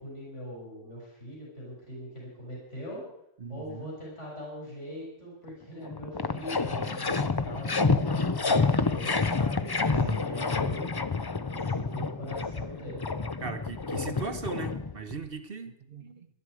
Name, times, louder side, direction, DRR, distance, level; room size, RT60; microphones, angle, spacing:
voice 1, 0.0-3.0 3.5-10.9 11.5-13.0, equal, 70° left, -4 dB, 6.0 m, -42 dB
voice 2, 3.4-3.9 9.8-10.4 13.4-16.3, right 5 dB, 50° right, 8 dB, 1.0 m, -38 dB
sound 1, 5.5-5.6 5.8-15.3, left 4 dB, 30° left, 0.4 m, -28 dB
19.0 x 12.0 x 4.8 m, 0.81 s
omnidirectional pair, 1.3 m